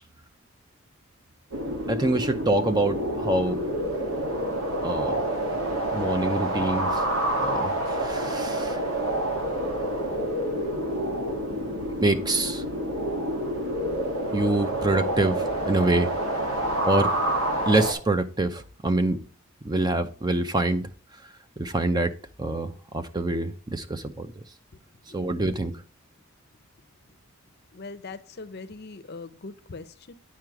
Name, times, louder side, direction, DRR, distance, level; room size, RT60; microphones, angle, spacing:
sound 1, 1.5-17.9, right 1 dB, 80° right, 2.1 m, -28 dB
voice 1, 1.9-3.7 4.8-5.2 5.9-7.1 7.4-8.8 12.0-12.6 14.3-16.1 16.9-17.1 17.6-19.2 19.6-22.1 22.4-24.4 25.1-25.8, right 2 dB, 20° right, 0.5 m, -26 dB
voice 2, 27.7-30.1, left 3 dB, 45° left, 0.6 m, -41 dB
9.3 x 4.9 x 4.6 m
head